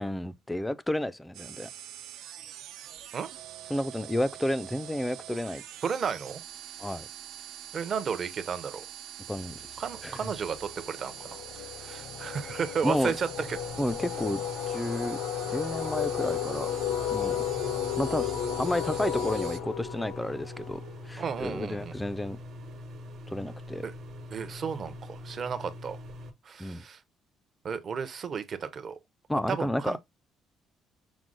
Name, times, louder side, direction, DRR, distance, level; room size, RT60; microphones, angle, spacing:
voice 1, 0.0-1.7 3.7-5.6 6.8-7.1 9.3-10.3 12.8-13.1 13.8-14.4 14.7-15.2 15.5-16.7 17.1-17.4 18.0-18.3 18.6-20.8 21.1-22.4 23.3-23.9 26.6-26.8 29.3-30.0, left 1 dB, 5° left, 0.3 m, -31 dB
sound 1, 1.3-19.6, right 11 dB, 80° right, 0.5 m, -44 dB
voice 2, 5.8-6.4 7.7-8.9 9.8-11.4 11.8-13.6 21.2-21.9 23.8-23.9 24.3-26.0 26.5-27.0 27.6-29.0 29.5-30.0, right 6 dB, 35° right, 0.6 m, -33 dB
sound 2, 9.4-9.6 10.0-21.5, left 10 dB, 75° left, 0.7 m, -34 dB
sound 3, 13.4-26.3, left 1 dB, 55° right, 1.1 m, -43 dB
6.1 x 2.1 x 3.7 m
cardioid pair, 155°, 0 cm